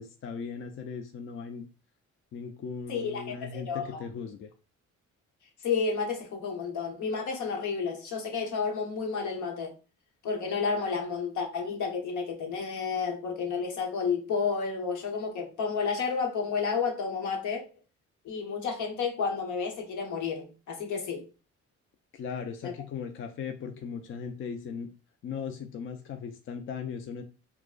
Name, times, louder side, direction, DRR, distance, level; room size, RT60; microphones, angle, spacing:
voice 1, 0.0-1.7 2.3-4.5 22.1-24.9 25.2-27.2, left 6 dB, 45° left, 0.4 m, -38 dB
voice 2, 2.9-4.0 5.6-9.7 10.2-17.6 18.2-21.2 22.6-22.7, left 5 dB, 75° left, 1.0 m, -31 dB
4.5 x 2.1 x 2.4 m
cardioid pair, 90°, 30 cm